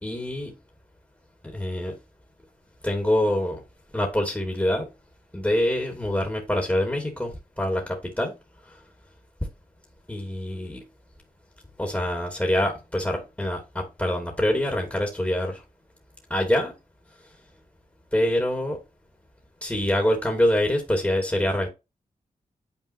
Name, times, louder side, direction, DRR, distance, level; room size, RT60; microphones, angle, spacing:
voice 1, 0.0-0.6 1.4-1.9 2.8-3.6 3.9-4.9 5.3-7.3 7.6-8.3 10.1-10.8 11.8-15.6 16.3-16.7 18.1-18.8 19.6-21.7, left 1 dB, 10° left, 2.5 m, -25 dB
9.6 x 4.4 x 2.9 m
supercardioid pair, 40°, 15 cm